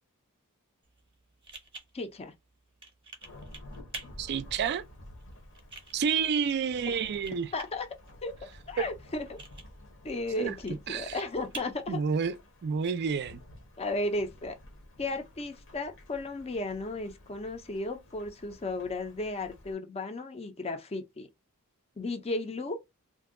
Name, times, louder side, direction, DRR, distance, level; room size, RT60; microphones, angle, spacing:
sound 1, 0.8-12.9, right 3 dB, 25° right, 0.8 m, -50 dB
voice 1, 1.9-2.3 6.9-7.0 7.5-7.9 8.2-9.4 10.0-12.0 13.8-14.5 15.0-21.3 22.0-22.8, left 2 dB, 30° left, 0.5 m, -34 dB
Thunderstorm / Rain, 3.2-19.7, left 1 dB, 60° left, 1.0 m, -52 dB
voice 2, 4.2-4.8 5.9-7.5 8.8-8.9 10.4-10.5 10.9-11.2 11.9-12.4 12.6-13.4, right 6 dB, 50° right, 0.4 m, -29 dB
2.6 x 2.2 x 3.6 m
head